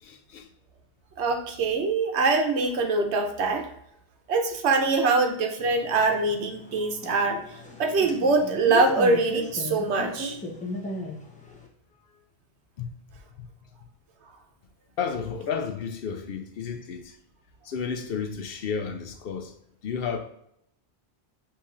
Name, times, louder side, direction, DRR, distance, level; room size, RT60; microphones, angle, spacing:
voice 1, 0.0-0.5 12.8-12.9 15.0-17.2 17.6-19.5 19.8-20.2, left 6 dB, 65° left, 0.7 m, -32 dB
voice 2, 1.2-3.7 4.3-7.4 7.8-10.4, right 3 dB, 90° right, 1.0 m, -23 dB
sound 1, 5.6-11.7, left 2 dB, 10° left, 0.6 m, -37 dB
7.0 x 2.8 x 2.4 m
omnidirectional pair, 1.1 m